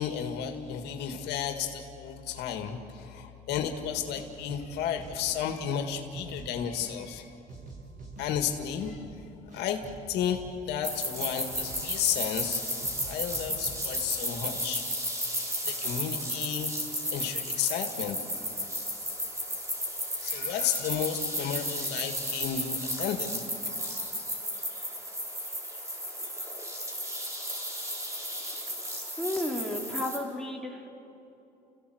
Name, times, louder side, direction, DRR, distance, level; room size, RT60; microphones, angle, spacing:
voice 1, 0.0-7.3 8.2-9.2 9.5-9.8 10.1-12.6 13.0-14.8 15.2-15.4 15.6-16.7 17.1-18.2 20.2-23.7, left 8 dB, 85° left, 5 dB, 1.9 m, -33 dB
sound 1, 3.5-3.9 4.2-5.9 6.2-7.2 7.5-9.2 9.5-11.2 11.5-12.5 12.8-14.0, right 3 dB, 50° right, 7.5 m, -46 dB
sound 2, 10.8-30.2, equal, 20° right, 4.5 m, -34 dB
voice 2, 29.2-30.9, left 1 dB, ahead, -1 dB, 2.9 m, -33 dB
30.0 x 15.5 x 7.9 m, 2.8 s
cardioid pair, 110°, 17 cm